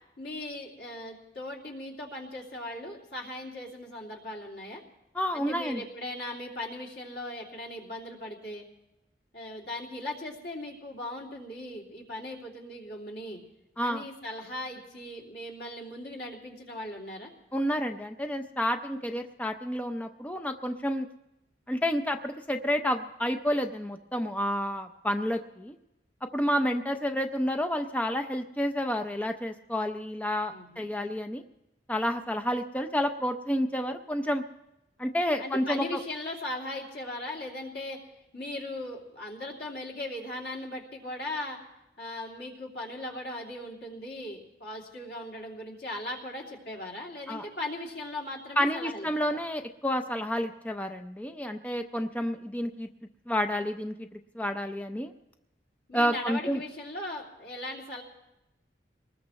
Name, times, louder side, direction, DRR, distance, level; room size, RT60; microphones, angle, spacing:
voice 1, 0.2-4.8 5.3-8.6 9.3-13.4 13.8-17.3 30.5-30.8 35.4-38.0 38.3-41.6 42.0-49.4 55.9-58.0, left 1 dB, 85° left, -2 dB, 2.8 m, -38 dB
voice 2, 5.1-5.8 13.8-14.0 17.5-21.1 21.7-25.7 26.3-31.4 31.9-34.4 35.0-35.8 47.3-47.4 48.6-52.9 53.3-55.1 55.9-56.6, equal, 10° left, 6 dB, 0.5 m, -30 dB
23.0 x 20.0 x 3.1 m, 0.89 s
head